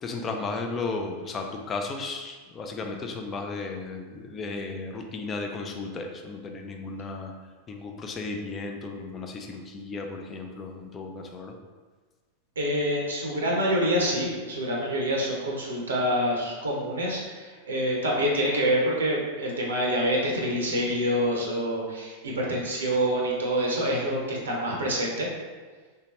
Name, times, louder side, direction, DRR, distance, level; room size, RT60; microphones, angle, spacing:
voice 1, 0.0-7.3 7.7-11.5, left 3 dB, 25° left, 3 dB, 0.4 m, -34 dB
voice 2, 12.6-25.3, equal, 70° right, -2 dB, 0.6 m, -26 dB
3.3 x 2.8 x 2.9 m, 1.4 s
figure-of-eight pair, 90°, 0 cm